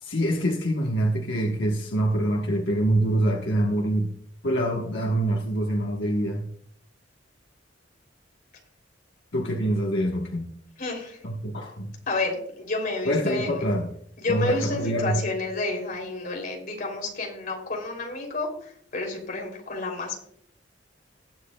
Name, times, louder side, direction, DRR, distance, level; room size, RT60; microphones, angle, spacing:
voice 1, 0.0-4.1 4.4-6.5 9.3-10.5 11.2-11.9 13.0-13.9 14.3-15.2, right 1 dB, 70° left, 0 dB, 1.2 m, -25 dB
voice 2, 10.8-11.2 12.1-13.7 14.2-20.2, left 3 dB, 50° left, 1 dB, 3.0 m, -30 dB
19.5 x 7.6 x 2.3 m, 0.65 s
head